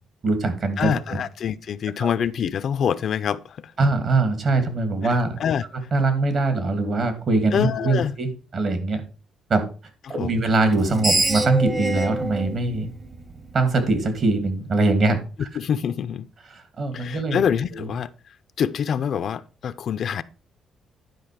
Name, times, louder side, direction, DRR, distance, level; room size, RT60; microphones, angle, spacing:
voice 1, 0.2-1.2 2.0-2.1 3.8-5.4 5.7-9.0 9.5-9.7 10.1-12.9 13.5-15.5 16.5-17.4 17.7-17.9, right 3 dB, 55° right, 2.6 m, -22 dB
voice 2, 0.8-3.6 5.0-5.1 5.4-5.6 7.5-8.1 10.2-10.3 15.6-16.3 16.9-18.1 18.6-20.2, left 8 dB, 60° left, 0.6 m, -25 dB
Screech, 10.7-13.9, right 2 dB, 25° right, 1.1 m, -26 dB
11.0 x 5.1 x 4.9 m
cardioid pair, 90°, 0 cm